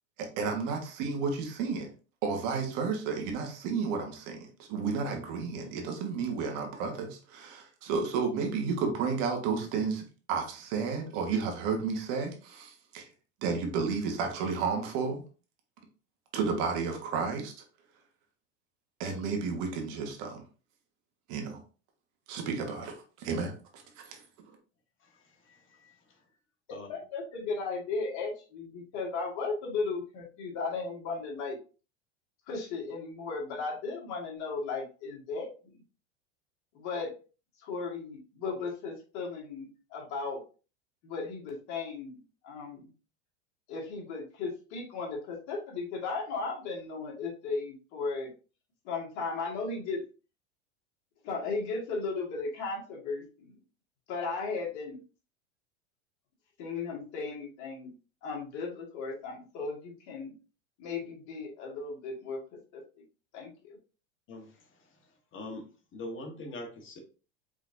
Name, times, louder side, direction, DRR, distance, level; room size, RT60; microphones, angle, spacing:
voice 1, 0.2-1.9 2.2-10.0 10.3-13.1 13.4-15.2 16.3-17.5 19.0-20.4 21.3-21.6 22.3-23.5 24.0-24.2, right 5 dB, 55° right, 3 dB, 1.6 m, -32 dB
voice 2, 25.5-25.9 26.7-26.9 64.3-64.5 65.3-65.7 65.9-67.0, left 2 dB, 35° left, 4 dB, 1.4 m, -42 dB
voice 3, 26.9-31.6 32.5-35.5 36.7-37.1 37.6-40.4 41.0-42.9 43.7-48.3 48.8-50.0 51.2-53.6 54.1-55.0 56.6-57.9 58.2-60.3 60.8-62.4 62.7-62.8 63.3-63.8, left 4 dB, 55° left, -1 dB, 2.0 m, -36 dB
4.9 x 4.0 x 2.7 m, 0.35 s
hypercardioid pair, 105°, 36 cm